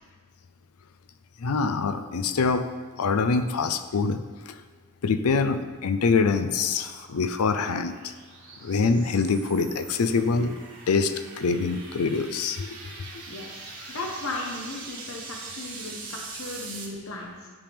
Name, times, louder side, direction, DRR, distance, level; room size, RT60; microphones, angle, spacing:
voice 1, 1.4-2.7 3.0-4.6 5.0-8.0 8.6-10.5 10.9-12.7, left 4 dB, 90° left, 10 dB, 0.5 m, -25 dB
sound 1, 5.7-16.9, right 4 dB, 60° right, 1.5 m, -43 dB
voice 2, 13.3-17.5, left 2 dB, 65° left, -1 dB, 0.9 m, -36 dB
10.5 x 5.1 x 3.5 m, 1.4 s
head